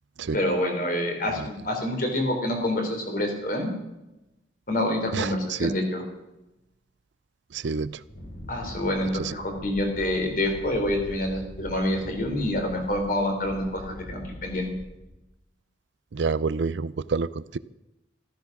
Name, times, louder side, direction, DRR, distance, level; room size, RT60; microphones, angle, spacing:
voice 1, 0.3-3.7 4.7-6.0 8.5-14.7, left 1 dB, 45° left, 3 dB, 3.7 m, -27 dB
voice 2, 5.1-5.7 7.5-8.0 9.2-9.3 16.1-17.6, right 4 dB, 75° right, 17 dB, 0.5 m, -28 dB
Wind, 8.0-15.2, equal, 75° left, 5.3 m, -43 dB
14.0 x 14.0 x 6.1 m, 0.95 s
head